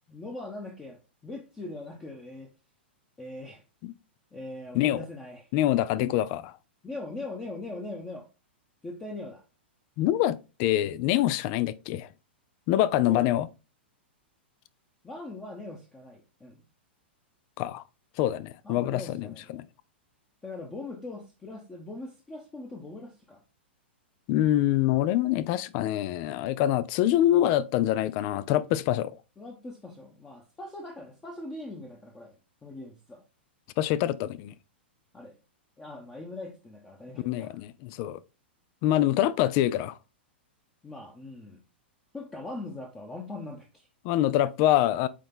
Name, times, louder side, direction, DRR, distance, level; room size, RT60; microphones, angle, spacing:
voice 1, 0.1-2.5 3.2-3.6 4.3-5.5 5.9-6.1 6.8-8.3 8.8-9.4 12.8-13.4 15.0-16.6 18.6-19.5 20.4-23.4 29.4-32.3 32.6-33.2 35.1-35.3 35.8-37.6 40.8-41.6 42.1-43.9, left 2 dB, 15° left, 1.0 m, -41 dB
voice 2, 5.5-6.4 10.0-12.1 12.7-13.5 17.6-17.8 18.2-19.3 19.5-19.6 24.3-29.1 33.8-34.5 37.2-38.2 38.8-40.0 44.0-45.1, left 13 dB, 35° left, 0.4 m, -25 dB
8.5 x 3.3 x 3.6 m
figure-of-eight pair, 100°, 6 cm